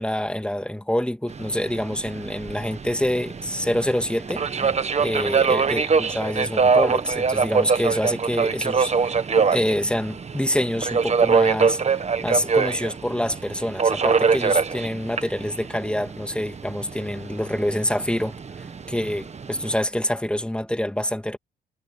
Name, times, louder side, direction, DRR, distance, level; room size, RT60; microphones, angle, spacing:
voice 1, 0.0-11.8 12.2-21.4, left 1 dB, 5° left, 2.4 m, -26 dB
Subway metro underground, 1.3-19.7, right 5 dB, 35° right, 1.4 m, -24 dB
cardioid pair, 90°, 20 cm